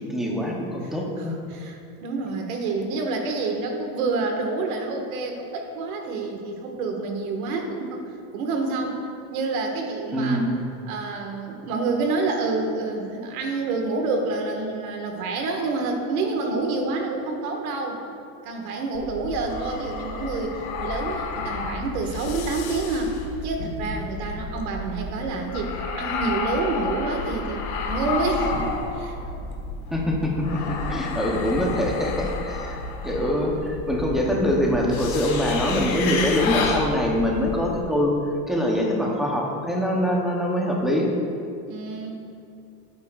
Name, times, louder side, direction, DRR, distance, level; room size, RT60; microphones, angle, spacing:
voice 1, 0.1-1.4 10.1-10.6 29.9-32.8 33.0-38.1 38.5-41.1, left 1 dB, ahead, -2 dB, 0.6 m, -24 dB
voice 2, 1.2-8.0 8.3-9.0 9.3-10.4 10.8-18.0 18.4-23.2 23.4-29.2 30.9-31.2 41.7-42.1, right 3 dB, 90° right, 3 dB, 1.5 m, -28 dB
sound 1, 18.9-37.8, left 3 dB, 90° left, 1.4 m, -31 dB
14.5 x 8.5 x 2.3 m, 2.5 s
cardioid pair, 170°, 41 cm